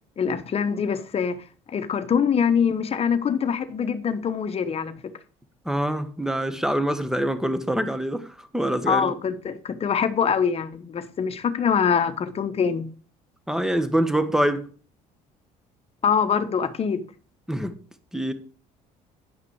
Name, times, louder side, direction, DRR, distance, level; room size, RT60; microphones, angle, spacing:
voice 1, 0.2-1.4 1.7-4.9 8.9-12.9 16.0-17.0, left 7 dB, 40° left, 1.1 m, -24 dB
voice 2, 5.6-9.1 13.5-14.6 17.5-17.7 18.1-18.3, right 1 dB, 5° right, 1.3 m, -25 dB
10.0 x 5.8 x 4.7 m
supercardioid pair, 85°, 16 cm